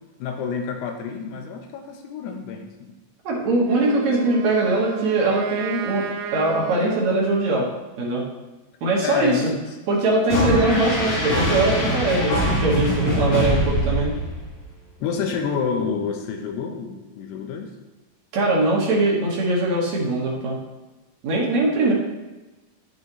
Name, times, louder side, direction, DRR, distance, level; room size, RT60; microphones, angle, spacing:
voice 1, 0.2-2.9 9.0-9.6 10.3-10.5 12.1-12.6 13.2-13.3 15.0-17.7, left 6 dB, 80° left, 4 dB, 2.8 m, -29 dB
voice 2, 3.2-6.1 6.3-7.7 8.0-8.2 8.8-9.5 9.9-14.1 18.3-20.6 21.2-21.9, right 2 dB, 60° right, -3 dB, 2.0 m, -21 dB
Wind instrument woodwind instrument, 3.6-7.8, right 10 dB, 80° right, 2.3 m, -33 dB
sound 1, 10.3-14.6, equal, 45° left, 2.4 m, -23 dB
9.5 x 7.3 x 3.1 m, 1.1 s
omnidirectional pair, 4.8 m